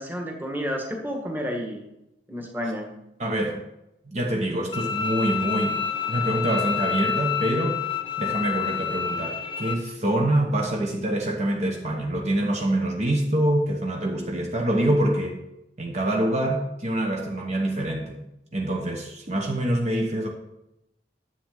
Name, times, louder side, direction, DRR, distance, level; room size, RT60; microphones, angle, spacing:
voice 1, 0.0-1.8 2.3-2.9, equal, 10° right, 1 dB, 1.5 m, -30 dB
voice 2, 3.2-3.6 4.1-5.8 6.1-7.8 8.2-15.4 15.8-18.2 18.5-20.3, right 1 dB, 40° right, 0 dB, 1.0 m, -25 dB
Bowed string instrument, 4.7-9.7, left 7 dB, 30° left, 0.7 m, -28 dB
10.0 x 7.3 x 3.8 m, 0.88 s
head